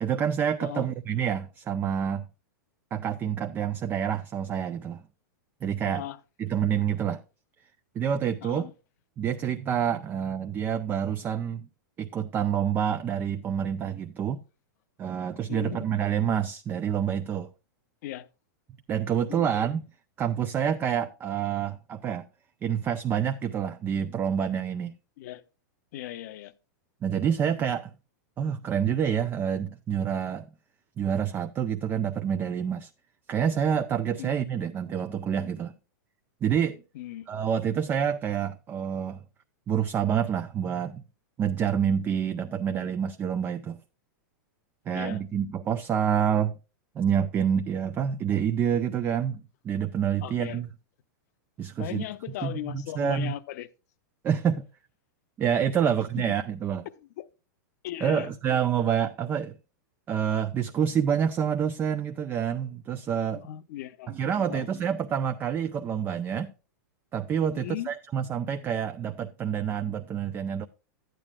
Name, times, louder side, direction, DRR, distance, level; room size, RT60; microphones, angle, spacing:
voice 1, 0.0-2.3 2.9-5.0 5.6-6.0 6.4-7.2 7.9-8.7 9.2-11.7 12.0-14.4 15.0-17.5 18.9-19.9 20.2-22.3 22.6-24.9 27.0-27.9 28.4-30.5 31.0-32.9 33.3-35.7 36.4-36.8 37.3-39.2 39.7-41.0 41.4-43.8 44.9-46.6 47.0-50.7 51.6-52.0 52.4-53.3 54.2-54.7 55.4-56.9 58.0-59.6 60.1-63.5 64.1-66.5 67.1-70.7, right 8 dB, 20° right, 0.4 m, -27 dB
voice 2, 5.8-6.2 8.4-8.7 15.5-15.9 18.0-18.3 19.3-19.5 25.2-25.4 25.9-26.5 34.2-34.3 36.9-37.3 44.9-45.2 50.2-50.6 51.8-53.7 55.8-56.0 57.2-57.3 57.8-58.3 63.3-64.7 67.5-67.9, left 13 dB, 55° left, 0.7 m, -37 dB
12.0 x 9.1 x 2.3 m
hypercardioid pair, 145°, 10 cm